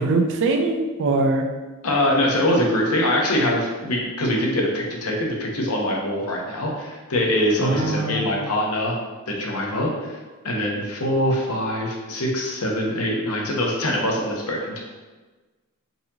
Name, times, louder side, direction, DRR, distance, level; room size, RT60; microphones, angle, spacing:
voice 1, 0.0-1.5 7.6-8.4, right 3 dB, 55° right, 4 dB, 0.4 m, -22 dB
voice 2, 1.8-9.0 9.3-10.2 10.4-14.8, left 1 dB, 80° left, -1 dB, 0.8 m, -23 dB
4.0 x 2.7 x 2.8 m, 1.3 s
head